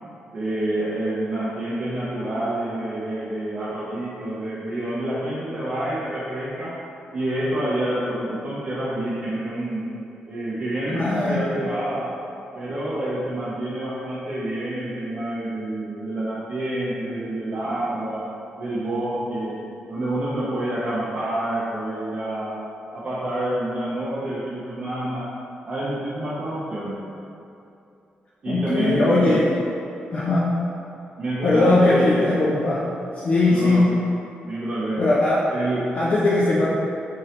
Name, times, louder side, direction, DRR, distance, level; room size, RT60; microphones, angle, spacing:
voice 1, 0.3-6.8 7.1-9.9 10.3-12.1 12.5-19.6 19.9-22.6 22.9-25.4 25.6-27.1 28.4-29.4 31.2-32.3 33.4-34.0 34.5-35.1 35.5-36.0, right 1 dB, 35° right, -8 dB, 0.5 m, -28 dB
voice 2, 10.9-11.4 28.5-29.5 30.1-30.5 31.4-32.8 33.2-33.8 35.0-35.5 35.9-36.7, left 2 dB, 40° left, -6 dB, 0.4 m, -19 dB
3.7 x 2.7 x 3.1 m, 2.7 s
wide cardioid pair, 170°, 3 cm